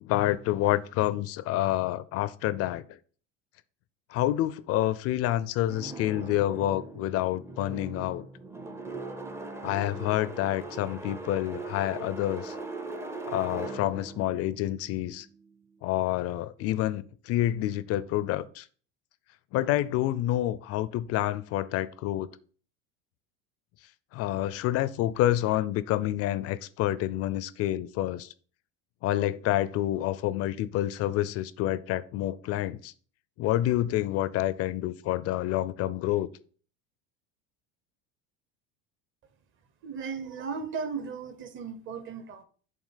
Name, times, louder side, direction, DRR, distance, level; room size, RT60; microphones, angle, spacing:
voice 1, 0.0-2.8 4.1-8.3 9.6-12.5 13.3-15.3 15.8-18.7 19.5-22.3 24.1-28.3 29.0-32.9 33.4-36.3, left 14 dB, 45° left, 0.4 m, -28 dB
sound 1, 5.7-15.6, right 2 dB, 10° right, 0.5 m, -40 dB
voice 2, 39.8-42.4, right 5 dB, 35° right, 0.9 m, -36 dB
7.4 x 2.9 x 5.6 m
cardioid pair, 135°, 35 cm